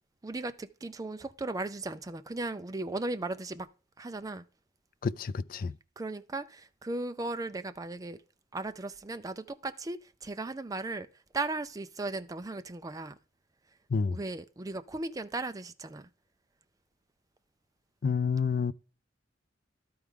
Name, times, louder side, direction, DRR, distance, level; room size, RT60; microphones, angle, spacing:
voice 1, 0.2-3.7 4.0-4.4 6.0-8.2 8.5-11.1 11.3-13.2 14.1-16.1, right 2 dB, 20° right, 0.4 m, -36 dB
voice 2, 5.0-5.7 13.9-14.2 18.0-18.7, left 5 dB, 50° left, 0.4 m, -29 dB
12.5 x 4.7 x 3.6 m
head